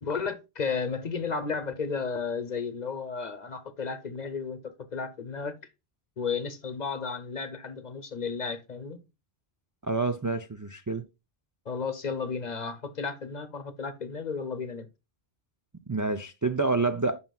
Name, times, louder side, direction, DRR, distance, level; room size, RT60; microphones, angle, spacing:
voice 1, 0.0-5.6 6.2-9.0 11.7-14.9, left 5 dB, 45° left, 0.9 m, -33 dB
voice 2, 9.9-11.0 15.9-17.2, right 3 dB, 30° right, 0.3 m, -28 dB
9.3 x 5.9 x 2.3 m
omnidirectional pair, 1.1 m